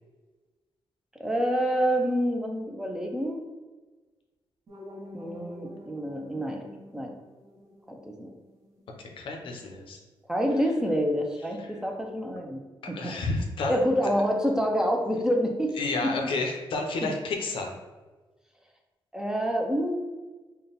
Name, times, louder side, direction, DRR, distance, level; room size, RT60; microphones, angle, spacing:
voice 1, 1.2-3.4 5.1-6.6 6.9-7.1 7.9-8.3 10.3-12.6 12.9-13.1 13.7-15.8 16.0-16.1 17.0-17.1 19.1-20.0, equal, 5° right, 2 dB, 0.4 m, -27 dB
sound 1, 4.7-9.6, left 1 dB, 40° right, 1.0 m, -48 dB
voice 2, 9.0-10.0 11.6-11.7 12.9-13.8 15.8-17.8, left 3 dB, 80° left, 2 dB, 0.6 m, -31 dB
3.7 x 2.2 x 3.9 m, 1.3 s
wide cardioid pair, 140°, 9 cm